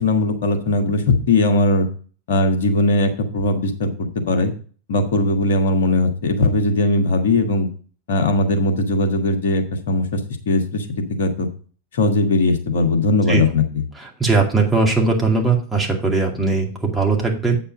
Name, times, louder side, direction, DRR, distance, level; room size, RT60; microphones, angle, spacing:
voice 1, 0.0-1.9 2.3-4.5 4.9-7.7 8.1-10.2 10.5-10.9 11.2-11.5 11.9-13.8, left 2 dB, 60° left, 5 dB, 1.5 m, -19 dB
voice 2, 14.0-17.5, right 3 dB, 5° right, -2 dB, 2.3 m, -19 dB
8.1 x 5.4 x 5.2 m, 0.40 s
figure-of-eight pair, 90°, 0 cm